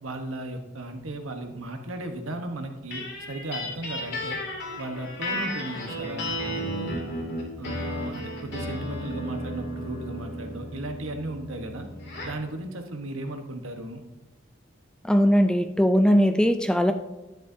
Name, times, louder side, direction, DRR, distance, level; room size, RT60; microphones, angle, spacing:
voice 1, 0.0-4.4 4.8-7.0 7.6-11.9 12.2-14.0, right 1 dB, 75° right, 4 dB, 1.2 m, -36 dB
sound 1, 2.9-12.4, equal, 55° left, 2.7 m, -34 dB
voice 2, 15.0-16.9, equal, 5° left, 8 dB, 0.4 m, -20 dB
11.0 x 10.5 x 2.8 m, 1.0 s
head